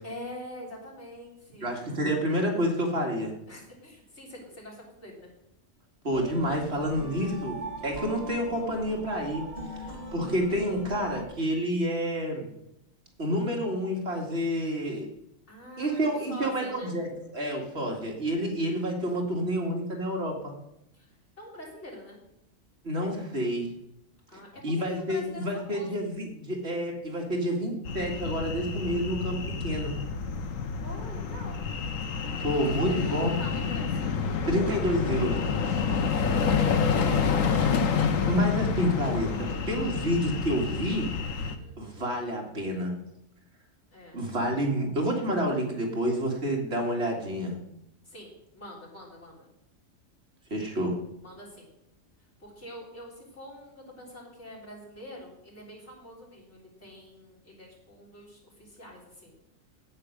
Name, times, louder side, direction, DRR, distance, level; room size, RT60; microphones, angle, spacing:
voice 1, 0.0-1.8 3.5-5.3 15.5-17.0 20.9-21.1 21.4-22.2 24.3-24.6 24.9-25.9 30.4-30.5 30.8-31.6 32.5-32.6 33.1-33.9 36.0-37.5 41.6-42.0 43.9-44.2 48.0-49.5 51.2-51.7 52.4-59.4, left 1 dB, 60° left, -4 dB, 4.1 m, -45 dB
voice 2, 1.6-3.3 6.0-9.4 9.8-12.5 13.2-15.1 15.8-20.5 22.8-23.7 24.3-29.9 32.4-33.3 34.5-35.4 38.1-41.1 41.8-42.9 44.1-47.6 50.5-51.0, equal, 55° right, 0 dB, 2.2 m, -29 dB
Ghostly music, 6.1-11.2, right 1 dB, 35° right, 1.7 m, -40 dB
sound 1, 27.9-41.6, left 5 dB, 85° left, 1.3 m, -28 dB
9.6 x 8.7 x 6.5 m, 0.83 s
omnidirectional pair, 1.3 m